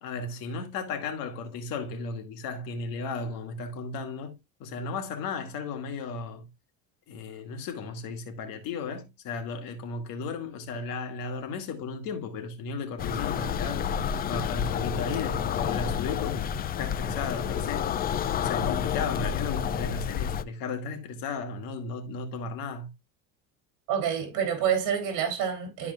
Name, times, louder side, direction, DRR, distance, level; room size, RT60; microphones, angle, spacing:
voice 1, 0.0-6.5 7.1-14.0 14.2-17.9 18.4-22.9, left 4 dB, 65° left, 2.3 m, -35 dB
sound 1, 13.0-20.4, left 9 dB, 25° left, 0.4 m, -29 dB
voice 2, 23.9-25.9, right 8 dB, 55° right, 3.2 m, -27 dB
13.0 x 4.7 x 2.4 m
cardioid pair, 130°, 37 cm